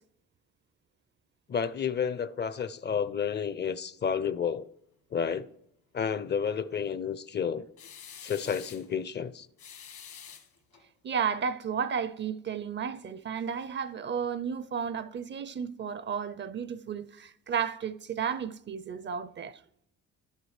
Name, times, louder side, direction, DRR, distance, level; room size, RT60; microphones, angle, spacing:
voice 1, 1.5-4.7 5.1-5.5 5.9-7.6 8.2-9.5, left 7 dB, 35° left, 0.5 m, -31 dB
sound 1, 7.8-8.9 9.6-10.8, left 8 dB, 75° left, 1.4 m, -47 dB
voice 2, 11.0-19.6, right 7 dB, 40° right, 0.5 m, -33 dB
11.5 x 8.0 x 3.2 m
cardioid pair, 90°, 30 cm